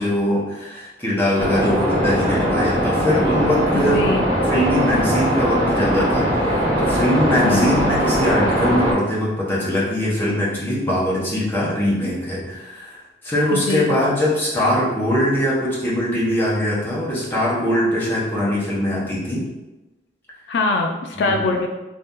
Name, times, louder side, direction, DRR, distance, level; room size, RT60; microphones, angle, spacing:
voice 1, 0.0-4.1 4.5-19.5 21.1-21.4, left 1 dB, 10° left, -7 dB, 0.9 m, -22 dB
sound 1, 1.4-8.9, equal, 25° right, 0.9 m, -20 dB
voice 2, 3.7-4.3 7.4-7.8 13.5-13.9 20.5-21.7, left 3 dB, 70° left, 2 dB, 0.3 m, -23 dB
2.7 x 2.6 x 3.6 m, 1.0 s
head